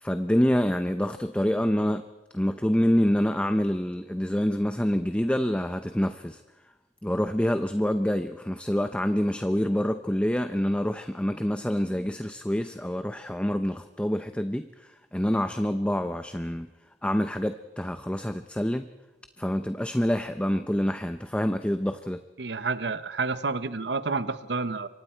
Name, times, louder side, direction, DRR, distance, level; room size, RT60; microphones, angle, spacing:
voice 1, 0.0-2.0 2.3-6.4 7.0-16.7 17.0-18.9 19.4-22.2, equal, 5° left, 9 dB, 0.6 m, -26 dB
voice 2, 22.4-24.9, right 4 dB, 75° right, 13 dB, 1.0 m, -29 dB
27.0 x 24.0 x 4.5 m, 1.1 s
head